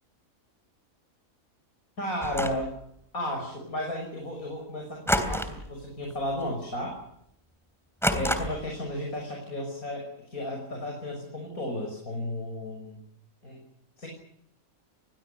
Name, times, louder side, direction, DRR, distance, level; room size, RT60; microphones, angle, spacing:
voice 1, 2.0-2.7 3.1-7.0 8.1-13.0 13.4-13.6 14.0-14.1, left 1 dB, 90° left, 1 dB, 6.7 m, -33 dB
sound 1, 2.2-2.7 5.1-5.7 6.0-6.4 6.7-6.8 8.0-8.8, equal, ahead, 3.1 m, -28 dB
28.5 x 21.5 x 6.7 m, 0.73 s
omnidirectional pair, 1.5 m